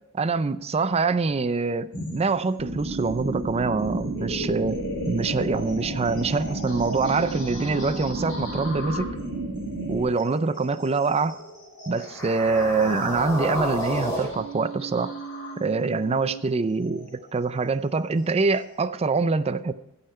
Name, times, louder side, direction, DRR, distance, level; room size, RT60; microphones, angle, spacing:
voice 1, 0.2-4.8 5.1-9.1 9.9-11.4 11.9-15.1 15.6-19.7, right 4 dB, 30° right, 0.4 m, -25 dB
sound 1, 1.9-18.8, left 1 dB, 55° left, 3.6 m, -39 dB
sound 2, 2.6-10.0, right 2 dB, 45° right, 1.6 m, -32 dB
sound 3, 12.0-16.4, equal, 15° left, 3.1 m, -32 dB
15.5 x 5.7 x 4.3 m
head